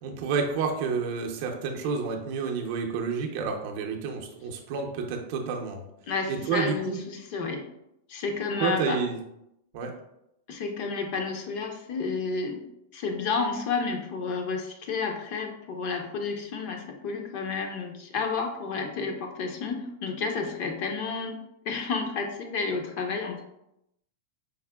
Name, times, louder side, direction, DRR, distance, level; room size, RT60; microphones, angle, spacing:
voice 1, 0.0-5.8 6.3-7.0 8.6-9.2 9.7-9.9, right 5 dB, 55° right, 2 dB, 0.5 m, -29 dB
voice 2, 6.1-7.6 8.1-9.0 10.5-12.6 12.9-21.4 21.7-23.4, left 4 dB, 50° left, 3 dB, 0.5 m, -31 dB
4.7 x 2.1 x 2.2 m, 0.82 s
supercardioid pair, 140°, 0 cm